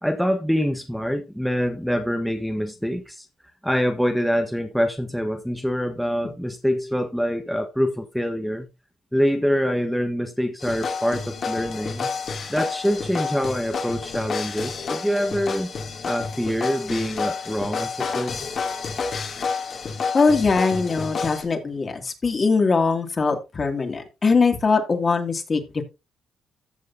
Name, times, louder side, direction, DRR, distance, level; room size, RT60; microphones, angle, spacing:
voice 1, 0.0-3.3 3.6-8.7 9.1-12.1 12.5-15.7 16.0-18.4, equal, ahead, 1.2 m, -25 dB
sound 1, 10.6-21.4, left 5 dB, 50° left, 2.6 m, -30 dB
voice 2, 20.1-25.8, left 4 dB, 35° left, 2.3 m, -21 dB
14.5 x 6.6 x 2.7 m
cardioid pair, 90°, 0 cm